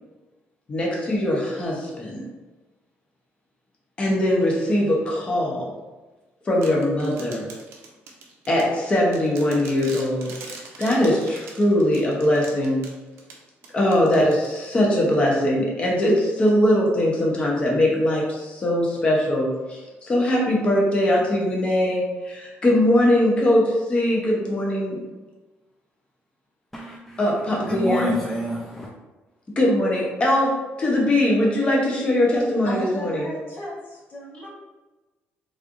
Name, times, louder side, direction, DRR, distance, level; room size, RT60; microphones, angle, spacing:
voice 1, 0.7-2.3 4.0-5.7 6.4-7.5 8.5-12.8 13.7-25.0 27.2-28.1 29.6-33.3, left 1 dB, 25° left, -2 dB, 0.9 m, -21 dB
sound 1, 6.6-15.1, right 4 dB, 85° right, 0.7 m, -43 dB
voice 2, 26.7-28.9, equal, 5° left, -3 dB, 0.4 m, -28 dB
voice 3, 32.6-34.5, equal, 50° left, -4 dB, 1.0 m, -35 dB
3.7 x 3.2 x 2.5 m, 1.2 s
cardioid pair, 150°, 4 cm